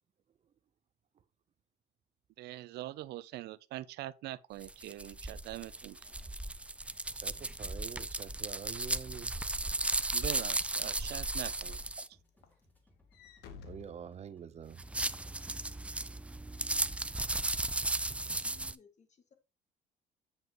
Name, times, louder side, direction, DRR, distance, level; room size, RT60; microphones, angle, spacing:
voice 1, 2.4-6.0 10.1-11.8, right 16 dB, 75° right, 0.5 m, -43 dB
sound 1, 4.6-12.1 14.7-18.8, right 2 dB, 5° right, 0.3 m, -35 dB
Walk footsteps / Slam, 4.9-10.7 11.2-11.5 11.8-14.8, left 6 dB, 80° left, 1.2 m, -58 dB
voice 2, 7.1-9.3 13.6-14.8, right 8 dB, 40° right, 0.7 m, -46 dB
sound 2, 8.9-16.9, left 2 dB, 10° left, 2.7 m, -67 dB
voice 3, 18.1-19.3, left 5 dB, 45° left, 1.9 m, -62 dB
8.0 x 7.2 x 3.0 m
cardioid pair, 110°, 17 cm